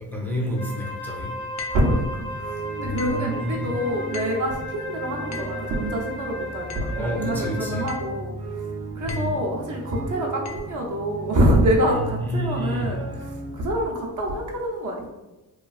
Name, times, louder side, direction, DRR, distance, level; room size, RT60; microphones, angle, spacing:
voice 1, 0.0-1.3 2.8-3.7 6.9-7.9 9.1-9.4 11.9-12.9, equal, 5° left, -3 dB, 0.6 m, -29 dB
Wind instrument woodwind instrument, 0.5-8.2, left 1 dB, 65° left, 0.8 m, -35 dB
sound 1, 1.6-2.0 3.0-3.3 4.1-4.5 5.3-5.6 6.7-7.0 7.9-8.2 9.1-9.4 10.4-10.7, left 5 dB, 45° left, 0.4 m, -38 dB
voice 2, 1.7-2.0 2.4-8.3 8.9-15.1, right 1 dB, 50° right, -2 dB, 0.6 m, -25 dB
sound 2, 1.8-13.5, right 3 dB, 85° right, 0.8 m, -37 dB
3.0 x 2.3 x 2.3 m, 1.1 s
cardioid pair, 85°, 40 cm